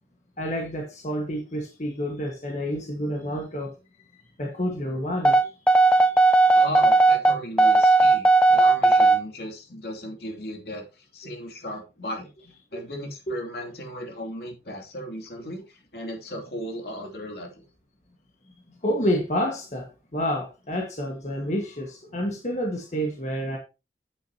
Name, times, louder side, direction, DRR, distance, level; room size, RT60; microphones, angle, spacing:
voice 1, 0.4-3.7 4.1-5.5 5.9-6.6 12.7-12.8 13.3-13.4 18.8-23.6, equal, 40° left, 1.6 m, -29 dB
sound 1, 5.2-9.2, right 2 dB, 5° left, 0.4 m, -17 dB
voice 2, 6.5-12.3 12.7-17.6, left 1 dB, 65° left, 2.8 m, -36 dB
8.9 x 8.8 x 2.9 m
head